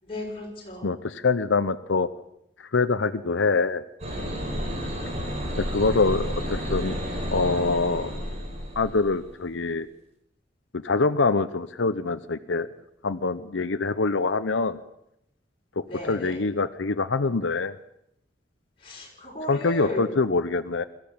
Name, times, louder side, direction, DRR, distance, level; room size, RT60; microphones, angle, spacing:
voice 1, 0.0-0.9 15.9-16.4 18.8-20.0, left 1 dB, 30° left, -2 dB, 6.5 m, -35 dB
voice 2, 0.8-2.1 2.6-3.8 5.6-7.0 7.3-8.1 8.8-9.9 10.7-12.7 13.0-14.8 15.8-17.7 19.5-20.8, left 3 dB, 90° left, 11 dB, 0.8 m, -25 dB
sound 1, 4.0-9.3, equal, 35° right, 5.1 m, -31 dB
22.0 x 14.5 x 8.6 m, 0.79 s
head